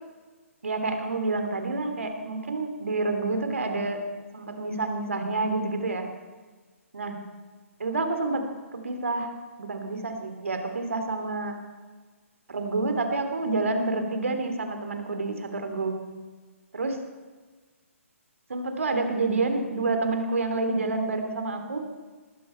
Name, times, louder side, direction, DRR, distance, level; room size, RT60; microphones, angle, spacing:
voice 1, 0.6-4.0 4.3-6.0 6.9-7.2 7.8-8.4 8.7-9.3 9.6-11.6 12.5-15.9 16.7-16.9 18.5-21.8, right 3 dB, 65° right, 5 dB, 2.9 m, -28 dB
20.0 x 15.0 x 4.5 m, 1.4 s
figure-of-eight pair, 130°, 8 cm